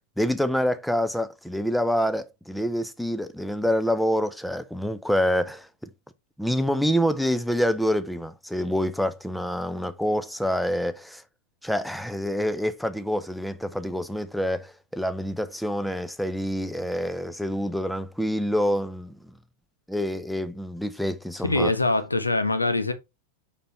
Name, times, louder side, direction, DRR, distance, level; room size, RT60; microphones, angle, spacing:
voice 1, 0.2-5.9 6.4-11.2 11.6-19.3 19.9-21.7, equal, ahead, 0.7 m, -27 dB
voice 2, 21.4-22.9, left 2 dB, 80° left, 0.9 m, -23 dB
6.8 x 5.5 x 3.2 m
figure-of-eight pair, 90°, 0 cm